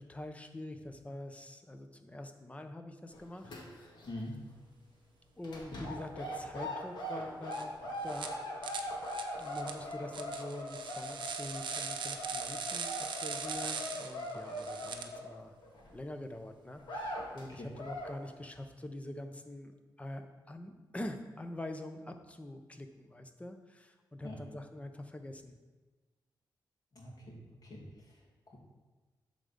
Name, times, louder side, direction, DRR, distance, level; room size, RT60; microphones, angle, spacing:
voice 1, 0.0-3.6 5.4-7.8 8.0-8.4 9.4-15.5 15.9-25.6, left 1 dB, 15° left, 6 dB, 0.9 m, -45 dB
sound 1, 3.1-4.1 4.3-4.6 5.4-15.9 16.3-16.4 16.8-17.4 17.7-18.2, equal, 75° left, 1.8 m, -41 dB
sound 2, 7.5-7.6 8.1-8.3 8.6-15.0, right 6 dB, 85° right, 0.8 m, -40 dB
voice 2, 26.9-27.4 27.6-28.6, left 1 dB, 55° left, -3 dB, 2.6 m, -45 dB
8.5 x 4.0 x 6.7 m, 1.3 s
cardioid pair, 80°, 8 cm